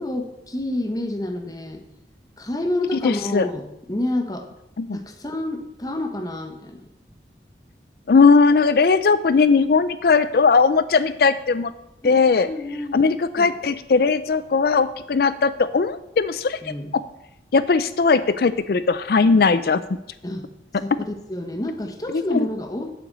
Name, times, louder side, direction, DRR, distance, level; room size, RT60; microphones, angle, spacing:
voice 1, 0.0-1.8 2.4-4.5 4.9-6.8 12.0-12.2 12.4-13.5 16.6-17.0 20.2-20.5 20.8-22.9, left 1 dB, 20° left, 5 dB, 1.1 m, -29 dB
voice 2, 3.0-3.5 4.8-5.0 8.1-11.7 12.0-12.5 12.9-16.6 17.5-20.0 22.3-22.5, left 4 dB, 55° left, 13 dB, 0.4 m, -18 dB
8.0 x 5.8 x 7.5 m, 0.84 s
head